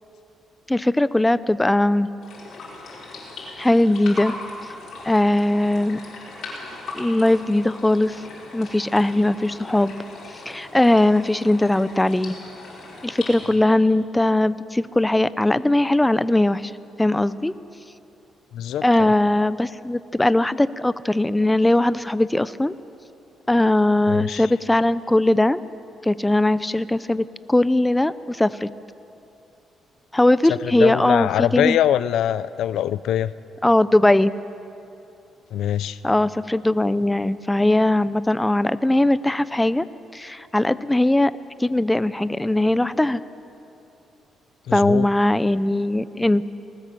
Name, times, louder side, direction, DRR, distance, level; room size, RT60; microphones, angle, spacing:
voice 1, 0.7-2.1 3.6-4.4 5.0-6.0 6.9-8.2 8.5-9.9 10.5-12.4 13.0-16.7 17.0-17.5 18.8-22.7 23.5-25.6 26.0-28.7 30.1-31.8 33.6-34.3 36.0-39.9 40.1-41.3 41.6-43.2 44.7-46.4, left 1 dB, 10° left, 16 dB, 0.6 m, -19 dB
sound 1, 2.2-13.5, left 3 dB, 60° left, 6.3 m, -39 dB
voice 2, 18.5-19.1 24.1-24.5 30.6-33.3 35.5-36.0 44.7-45.1, left 11 dB, 80° left, 17 dB, 0.5 m, -23 dB
19.5 x 19.0 x 7.6 m, 2.8 s
cardioid pair, 90°, 0 cm